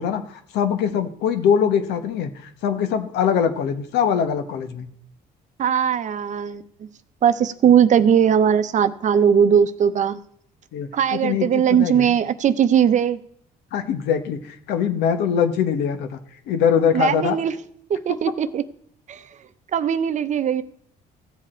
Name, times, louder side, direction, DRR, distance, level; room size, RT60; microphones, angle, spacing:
voice 1, 0.0-4.9 10.7-12.1 13.7-16.2 16.5-17.4, left 7 dB, 80° left, 1.2 m, -22 dB
voice 2, 5.6-6.6 7.2-10.2 10.9-13.2 16.9-17.5 17.9-18.6 19.1-19.3 19.7-20.6, right 8 dB, 45° right, 0.7 m, -19 dB
14.5 x 7.5 x 4.4 m
cardioid pair, 110°, 17 cm